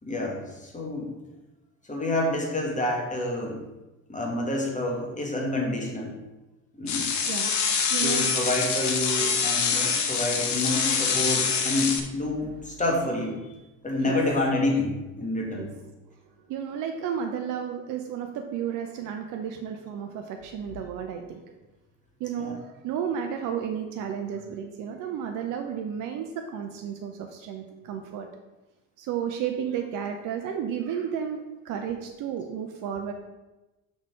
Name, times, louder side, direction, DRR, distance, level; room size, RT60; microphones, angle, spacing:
voice 1, 0.0-1.2 1.9-3.6 4.1-6.2 6.8-7.1 7.7-13.4 13.8-15.7 22.4-22.6, left 1 dB, 20° left, 0 dB, 1.9 m, -28 dB
sound 1, 6.9-12.0, left 6 dB, 45° left, 1.0 m, -25 dB
voice 2, 7.3-8.3 9.9-10.0 14.0-14.2 15.4-15.7 16.5-21.4 22.2-28.3 29.0-33.1, right 8 dB, 55° right, 4 dB, 0.7 m, -32 dB
6.2 x 4.1 x 4.7 m, 1.1 s
hypercardioid pair, 55°, 39 cm